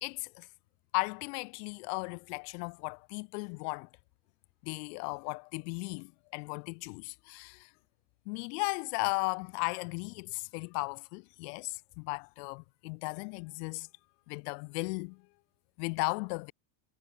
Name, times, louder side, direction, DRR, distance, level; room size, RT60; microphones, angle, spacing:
voice 1, 0.0-0.5 0.9-3.9 4.6-7.7 8.3-13.9 14.3-15.2 15.8-16.5, left 34 dB, 70° left, 0.9 m, -36 dB
cardioid pair, 155°, 49 cm